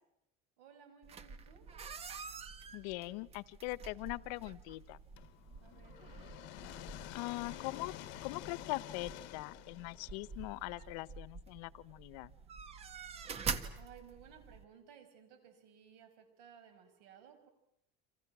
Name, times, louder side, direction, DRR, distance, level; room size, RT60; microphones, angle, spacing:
voice 1, 0.6-1.7 5.6-6.3 13.8-17.5, right 8 dB, 85° right, 7 dB, 6.2 m, -58 dB
sound 1, 1.0-14.6, right 5 dB, 30° right, 1.6 m, -47 dB
voice 2, 2.7-5.0 7.1-7.9 8.2-12.3, left 20 dB, 80° left, 19 dB, 0.9 m, -41 dB
sound 2, 5.2-11.1, left 17 dB, 65° left, 1.2 m, -49 dB
30.0 x 26.5 x 6.1 m, 0.80 s
cardioid pair, 140°, 21 cm